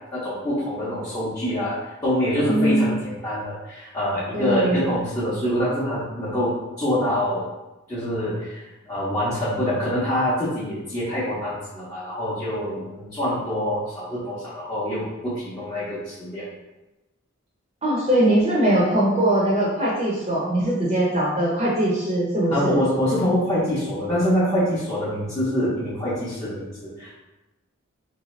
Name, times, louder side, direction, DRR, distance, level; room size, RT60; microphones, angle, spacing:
voice 1, 0.1-7.5 7.9-16.5 22.5-27.1, equal, 15° left, -10 dB, 0.7 m, -25 dB
voice 2, 2.5-3.0 4.3-4.8 17.8-22.7, right 1 dB, 30° right, -5 dB, 0.6 m, -21 dB
3.2 x 2.7 x 3.1 m, 1.0 s
head